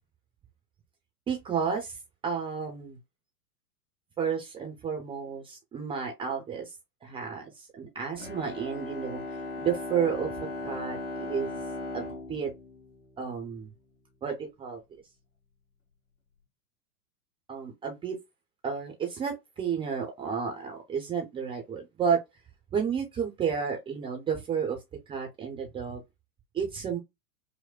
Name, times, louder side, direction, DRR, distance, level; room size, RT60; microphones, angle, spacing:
voice 1, 1.3-2.0 2.2-3.0 4.2-6.7 7.0-9.2 9.6-10.3 10.6-11.6 11.9-12.5 13.2-13.7 14.2-14.8 17.5-18.2 18.6-22.2 22.7-24.8 25.1-26.0 26.5-27.0, right 6 dB, 10° right, 0.6 m, -31 dB
Bowed string instrument, 8.2-13.7, left 2 dB, 65° left, 1.9 m, -38 dB
5.0 x 2.1 x 2.2 m
figure-of-eight pair, 100°, 47 cm